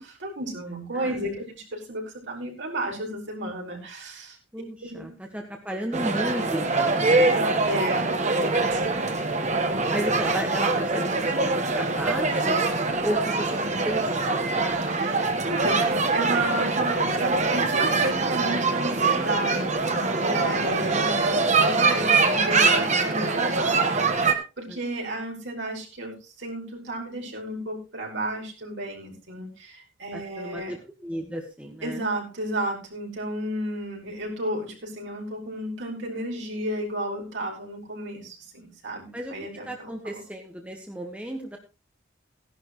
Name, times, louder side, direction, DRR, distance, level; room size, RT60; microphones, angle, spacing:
voice 1, 0.0-4.4 4.8-5.1 7.6-8.3 8.7-9.0 14.8-30.7 31.8-40.2, right 1 dB, 65° right, -1 dB, 5.2 m, -33 dB
voice 2, 0.9-1.3 4.5-7.4 9.9-12.6 13.0-13.6 13.8-14.6 24.7-24.8 30.1-32.0 39.1-39.3 39.6-41.6, equal, 5° right, 1 dB, 1.6 m, -34 dB
sound 1, 5.9-24.3, right 3 dB, 35° right, 1.5 m, -23 dB
16.0 x 11.0 x 3.2 m, 0.29 s
head